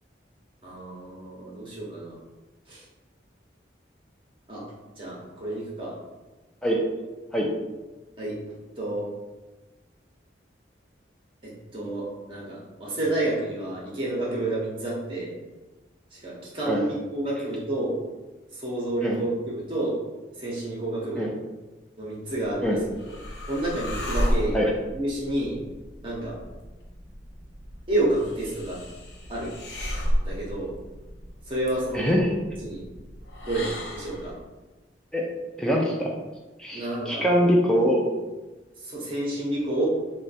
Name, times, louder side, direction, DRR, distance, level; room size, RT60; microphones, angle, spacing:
voice 1, 0.6-2.2 2.7-2.8 4.5-4.6 5.0-5.9 8.2-9.0 11.4-15.3 16.1-17.9 18.5-19.9 20.4-21.3 22.0-22.8 23.5-24.6 24.9-25.6 26.0-26.4 27.9-28.8 29.3-29.5 30.2-30.7 31.5-32.1 32.6-32.8 33.4-34.3 36.7-37.2 38.8-39.9, right 1 dB, 30° right, -5 dB, 0.8 m, -30 dB
sound 1, 22.5-34.4, equal, 70° left, 0.7 m, -33 dB
voice 2, 31.9-32.3 35.1-35.3 35.6-36.1 36.6-38.0, equal, 5° left, -2 dB, 0.4 m, -23 dB
3.7 x 2.2 x 4.1 m, 1.2 s
head